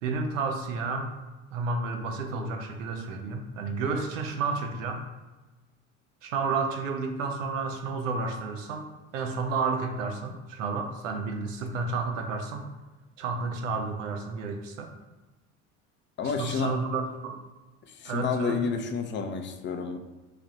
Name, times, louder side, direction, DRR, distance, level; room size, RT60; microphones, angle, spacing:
voice 1, 0.0-1.2 1.5-5.0 6.2-8.9 9.1-12.6 13.2-14.9 16.2-17.4 18.0-18.6, right 4 dB, 85° right, 4 dB, 0.6 m, -31 dB
voice 2, 16.2-16.7 17.9-20.0, left 5 dB, 30° left, 6 dB, 0.5 m, -30 dB
3.3 x 2.4 x 4.1 m, 1.2 s
hypercardioid pair, 70°, 37 cm